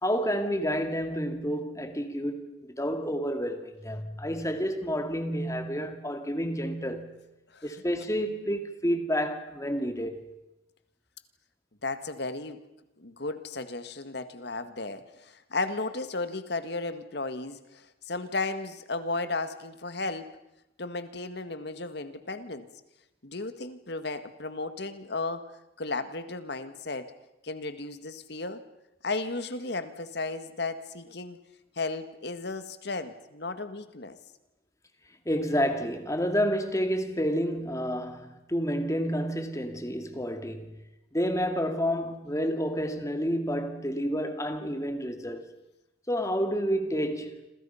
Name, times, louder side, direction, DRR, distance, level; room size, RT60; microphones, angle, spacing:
voice 1, 0.0-7.1 7.6-10.2 35.3-40.8 41.1-45.5 46.1-47.4, equal, 15° left, 2.2 m, -29 dB
voice 2, 11.8-12.6 13.0-20.3 20.8-22.7 23.2-25.5 25.8-27.1 27.4-28.6 29.0-31.4 31.8-34.2, left 3 dB, 60° left, 1.8 m, -34 dB
27.5 x 27.0 x 5.7 m
head